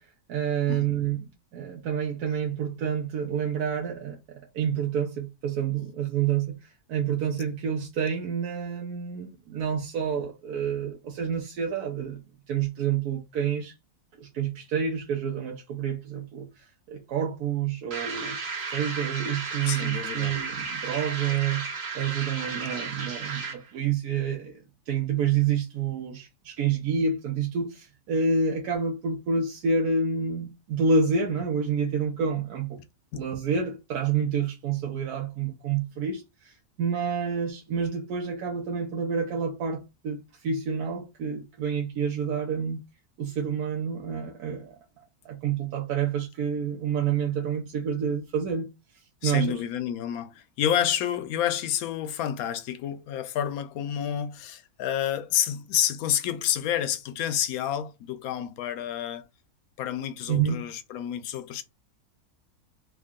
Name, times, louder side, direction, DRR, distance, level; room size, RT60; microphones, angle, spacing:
voice 1, 0.0-12.2 12.5-13.7 14.2-18.4 18.7-21.6 21.9-32.8 33.1-42.8 43.2-44.8 45.2-48.7 49.2-49.5 60.3-60.6, right 6 dB, 80° right, 1.2 m, -28 dB
sound 1, 17.9-23.7, right 4 dB, 50° right, 1.0 m, -34 dB
voice 2, 19.7-20.4 33.1-33.2 49.2-59.3 59.8-61.6, left 10 dB, 75° left, 1.0 m, -29 dB
3.6 x 2.2 x 3.5 m
omnidirectional pair, 1.6 m